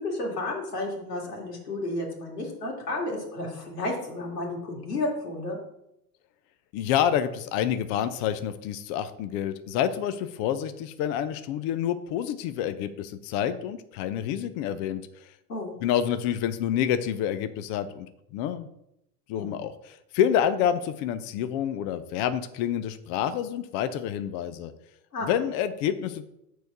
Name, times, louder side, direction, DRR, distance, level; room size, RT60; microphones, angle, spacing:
voice 1, 0.0-5.6 15.5-15.8 19.3-19.5 25.1-25.3, left 2 dB, 75° left, 0 dB, 2.5 m, -32 dB
voice 2, 6.7-15.0 15.8-18.1 18.3-18.7 19.3-24.7 25.2-26.3, left 9 dB, 30° left, 11 dB, 0.3 m, -28 dB
6.1 x 4.7 x 6.6 m, 0.82 s
figure-of-eight pair, 85°, 47 cm